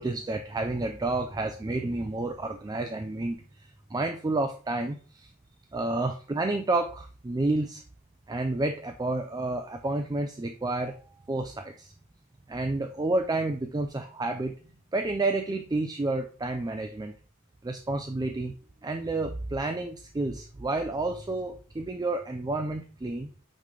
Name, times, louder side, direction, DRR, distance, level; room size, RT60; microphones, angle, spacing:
voice 1, 0.0-5.3 5.7-7.8 8.3-11.0 11.3-11.9 12.5-14.6 14.9-17.1 17.6-18.5 18.8-23.3, right 2 dB, 20° right, 6 dB, 0.4 m, -30 dB
8.7 x 3.2 x 3.8 m, 0.40 s
head